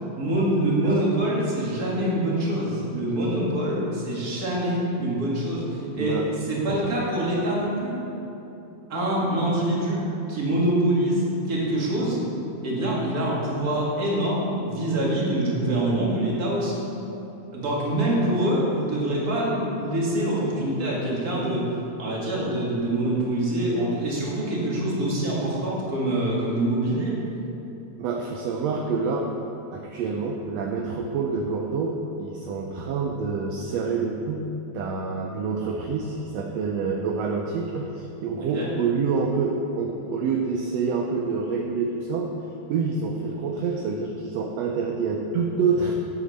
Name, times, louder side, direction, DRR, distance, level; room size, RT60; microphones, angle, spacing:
voice 1, 0.2-8.0 8.9-10.0 10.3-12.2 12.6-16.8 17.5-21.7 22.0-27.2 38.5-38.7, right 1 dB, 35° right, -5 dB, 2.3 m, -25 dB
voice 2, 6.0-6.3 6.7-6.8 20.6-20.7 28.0-29.3 29.7-34.5 34.7-42.3 42.7-46.0, right 4 dB, 75° right, 2 dB, 1.7 m, -27 dB
8.2 x 8.1 x 6.5 m, 2.9 s
omnidirectional pair, 3.3 m